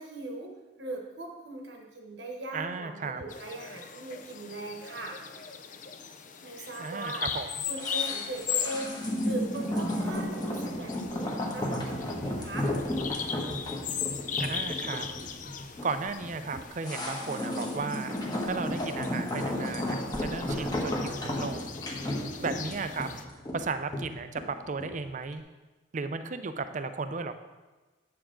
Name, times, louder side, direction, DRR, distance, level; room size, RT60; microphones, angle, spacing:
voice 1, 0.0-5.2 6.4-7.2 7.7-12.7 20.5-20.7 22.0-22.6, right 2 dB, 60° right, 1 dB, 1.1 m, -40 dB
voice 2, 2.5-3.2 6.8-7.5 14.4-15.1 15.8-21.8 22.4-23.1 23.5-25.4 25.9-27.3, right 4 dB, 40° right, 10 dB, 0.4 m, -35 dB
Bird vocalization bird call bird song, 3.3-23.2, left 7 dB, 40° left, 0.5 m, -39 dB
sound 1, 7.8-25.0 25.3-25.4, left 1 dB, 20° left, 1.1 m, -33 dB
8.4 x 7.0 x 3.8 m, 1.2 s
head